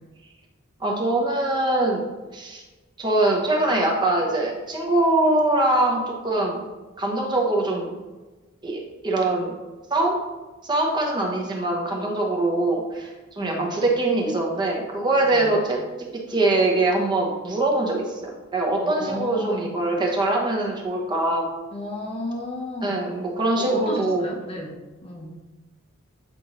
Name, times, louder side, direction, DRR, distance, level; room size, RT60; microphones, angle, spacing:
voice 1, 0.8-2.6 3.0-6.7 7.0-8.0 8.6-9.5 9.9-10.2 10.6-15.8 16.1-21.5 22.8-24.2, right 2 dB, 20° right, -1 dB, 0.8 m, -23 dB
voice 2, 13.4-13.7 15.3-15.6 18.8-19.7 21.7-23.0 23.5-25.4, left 1 dB, 25° left, 0 dB, 0.8 m, -33 dB
7.9 x 4.2 x 3.0 m, 1.2 s
head